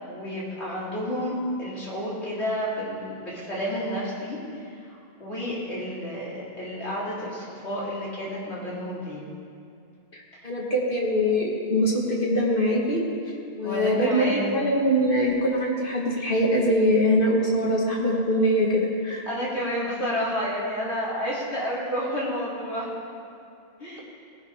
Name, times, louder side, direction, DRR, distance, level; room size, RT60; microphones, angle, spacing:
voice 1, 0.0-9.2 10.3-10.5 13.6-14.6 19.3-22.9 23.8-24.0, equal, 90° left, -7 dB, 3.4 m, -30 dB
voice 2, 10.1-13.0 13.6-19.2, equal, 55° left, -3 dB, 1.9 m, -23 dB
18.5 x 10.5 x 3.7 m, 2.4 s
omnidirectional pair, 1.1 m